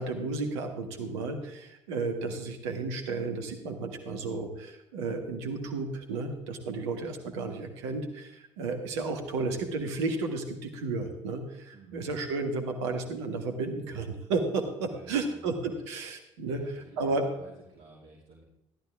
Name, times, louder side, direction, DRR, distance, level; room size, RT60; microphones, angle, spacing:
voice 1, 0.0-17.2, right 3 dB, 70° right, 5 dB, 1.7 m, -33 dB
voice 2, 11.7-12.0 14.8-15.8 16.4-18.4, right 3 dB, 50° right, -4 dB, 2.8 m, -52 dB
14.0 x 12.0 x 3.5 m, 0.87 s
figure-of-eight pair, 50°, 15 cm